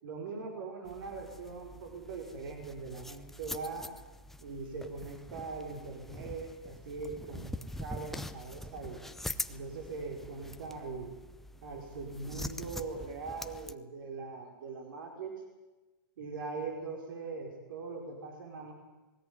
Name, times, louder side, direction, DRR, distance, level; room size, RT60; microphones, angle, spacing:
voice 1, 0.0-3.9 4.4-9.0 9.5-11.1 11.6-15.4 16.2-18.7, right 4 dB, 70° right, 2 dB, 5.0 m, -41 dB
sound 1, 0.9-13.7, left 1 dB, ahead, 0.7 m, -44 dB
20.0 x 17.0 x 9.7 m, 1.1 s
hypercardioid pair, 135°, 12 cm